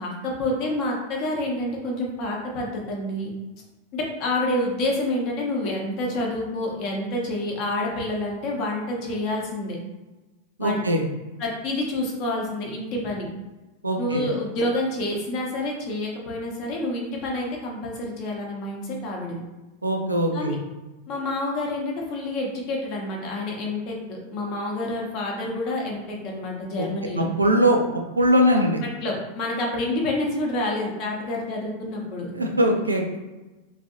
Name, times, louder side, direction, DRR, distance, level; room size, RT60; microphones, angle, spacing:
voice 1, 0.0-3.3 3.9-9.8 10.6-10.8 11.4-13.3 14.0-19.4 20.3-20.6 21.1-27.3 28.8-32.3, left 1 dB, 40° left, -1 dB, 0.8 m, -28 dB
voice 2, 10.6-11.0 13.8-14.2 19.8-20.6 27.2-27.8 28.2-28.8 32.3-33.2, equal, 80° right, 2 dB, 0.4 m, -21 dB
3.2 x 2.6 x 2.6 m, 1.1 s
figure-of-eight pair, 90°, 0 cm